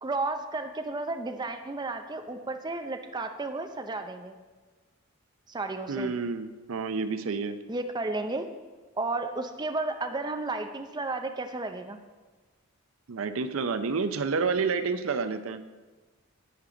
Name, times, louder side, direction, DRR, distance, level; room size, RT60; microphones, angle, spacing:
voice 1, 0.0-4.4 5.5-6.1 7.7-8.5 9.0-12.0, right 3 dB, 20° right, 6 dB, 0.5 m, -33 dB
voice 2, 5.9-7.6 13.1-15.6, right 4 dB, 70° right, 11 dB, 0.5 m, -29 dB
11.0 x 8.3 x 3.8 m, 1.3 s
head